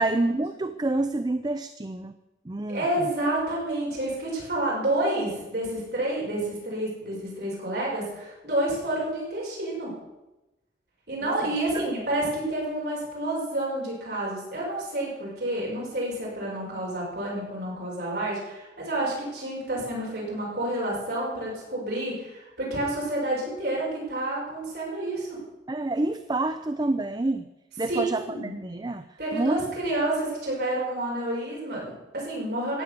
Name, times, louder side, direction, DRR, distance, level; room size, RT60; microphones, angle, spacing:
voice 1, 0.0-2.1 2.5-3.1 11.2-11.3 11.7-11.8 25.7-27.4 27.8-29.0 29.3-29.6, right 2 dB, 20° right, 11 dB, 0.4 m, -28 dB
voice 2, 2.7-9.9 11.1-25.4 27.9-28.5 29.2-32.8, right 1 dB, 60° right, -4 dB, 5.9 m, -29 dB
15.5 x 9.4 x 6.7 m, 1.0 s
head